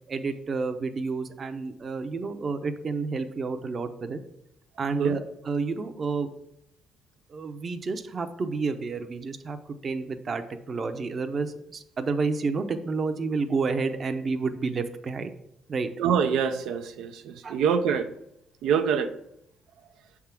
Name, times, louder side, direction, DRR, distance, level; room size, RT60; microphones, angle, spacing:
voice 1, 0.1-4.2 4.8-6.3 7.3-9.6 9.8-15.3 15.7-15.9 17.4-17.6, right 4 dB, 45° right, 8 dB, 0.7 m, -30 dB
voice 2, 16.0-18.1 18.6-19.1, right 7 dB, 85° right, 7 dB, 0.5 m, -25 dB
6.5 x 3.6 x 5.9 m, 0.77 s
cardioid pair, 90°, 0 cm